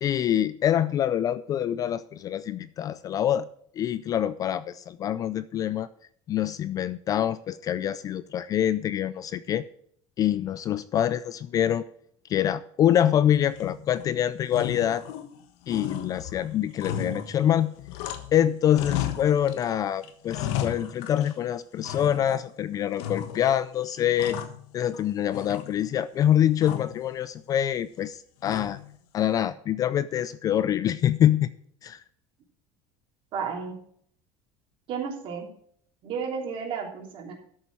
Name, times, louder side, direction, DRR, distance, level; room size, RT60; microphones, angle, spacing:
voice 1, 0.0-3.5 3.8-5.9 6.3-9.6 10.2-11.8 12.3-15.0 15.7-17.7 18.3-24.4 24.7-28.8 29.1-31.5 31.8-32.0, left 10 dB, 30° left, 16 dB, 0.3 m, -25 dB
sound 1, 13.5-14.1 14.5-15.4 15.7-18.4 18.7-19.7 20.0-21.4 21.8-22.5 23.0-23.6 23.9-25.0 25.3-26.0 26.6-27.0 28.4-29.0, left 10 dB, 70° left, 1.3 m, -35 dB
voice 2, 33.3-33.8 34.9-35.5 36.0-37.3, right 6 dB, 45° right, 1 dB, 3.1 m, -32 dB
13.5 x 7.0 x 4.7 m, 0.64 s
cardioid pair, 170°, 13 cm